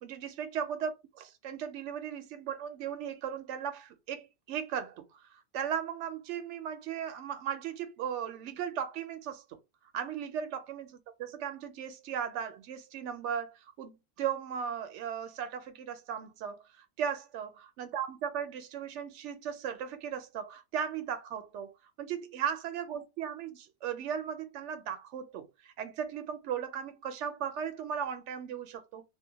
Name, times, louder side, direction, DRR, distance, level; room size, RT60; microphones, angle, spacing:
voice 1, 0.0-5.2 5.5-9.6 9.9-21.7 22.0-29.0, right 8 dB, 65° right, 0.9 m, -37 dB
2.8 x 2.2 x 2.7 m
omnidirectional pair, 1.4 m